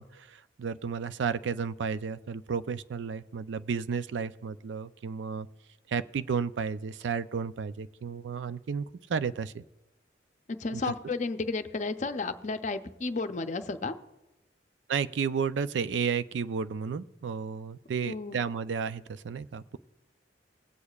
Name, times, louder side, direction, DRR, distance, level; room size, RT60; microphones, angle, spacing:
voice 1, 0.0-5.5 5.9-9.6 10.7-10.8 14.9-19.8, right 6 dB, 85° right, 14 dB, 0.4 m, -32 dB
voice 2, 10.5-14.0 18.0-18.4, left 3 dB, 40° left, 9 dB, 0.5 m, -32 dB
20.5 x 8.3 x 2.4 m, 1.1 s
head